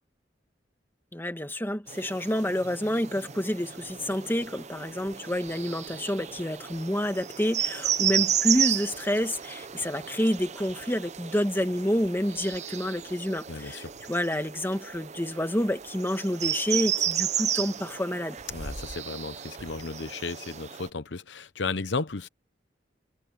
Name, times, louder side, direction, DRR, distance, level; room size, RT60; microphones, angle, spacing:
voice 1, 1.1-18.4, equal, 10° left, 1.8 m, -28 dB
sound 1, 1.9-20.9, right 9 dB, 40° right, 0.7 m, -33 dB
sound 2, 4.0-21.0, right 1 dB, 55° right, 5.1 m, -53 dB
voice 2, 13.5-13.9 18.5-22.3, left 4 dB, 75° left, 0.9 m, -34 dB
head